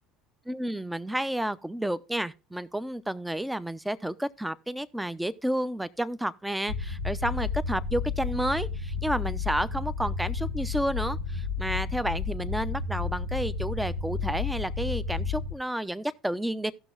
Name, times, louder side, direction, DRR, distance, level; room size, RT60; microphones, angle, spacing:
voice 1, 0.5-16.7, right 1 dB, 5° right, 0.6 m, -31 dB
sound 1, 6.7-15.5, left 5 dB, 85° right, 0.9 m, -32 dB
17.0 x 6.1 x 2.5 m
hypercardioid pair, 65°, 0 cm